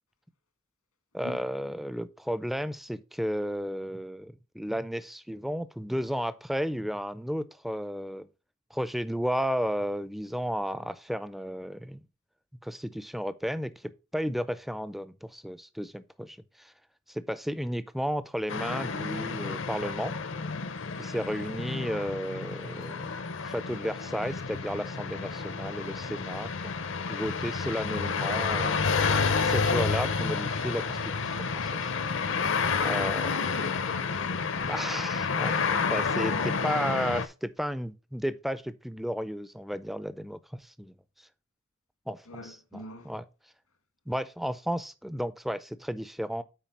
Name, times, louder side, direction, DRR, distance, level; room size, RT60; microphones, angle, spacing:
voice 1, 1.1-8.3 8.7-12.0 12.6-16.7 17.1-20.1 21.0-23.1 23.4-26.8 27.1-29.1 29.4-31.9 32.8-33.4 34.6-41.3 42.1-43.3 44.1-46.4, equal, ahead, 0.4 m, -33 dB
sound 1, 18.5-37.3, left 5 dB, 55° left, 0.7 m, -30 dB
voice 2, 33.3-34.5 42.3-43.1, left 2 dB, 80° left, 1.8 m, -43 dB
9.2 x 4.5 x 4.2 m
head